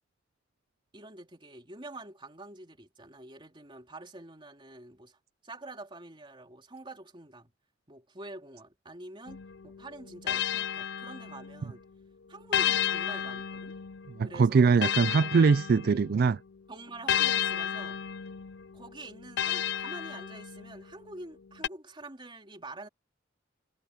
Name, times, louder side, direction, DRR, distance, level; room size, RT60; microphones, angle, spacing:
voice 1, 0.9-7.5 7.9-11.8 12.3-13.7 14.2-14.8 16.7-18.0 18.7-22.9, right 2 dB, 25° right, 3.2 m, -46 dB
sound 1, 9.3-11.7 12.5-16.3 17.1-20.8 21.6-21.7, left 10 dB, 65° left, 0.5 m, -32 dB
voice 2, 14.2-16.4, right 5 dB, 55° right, 0.3 m, -22 dB
head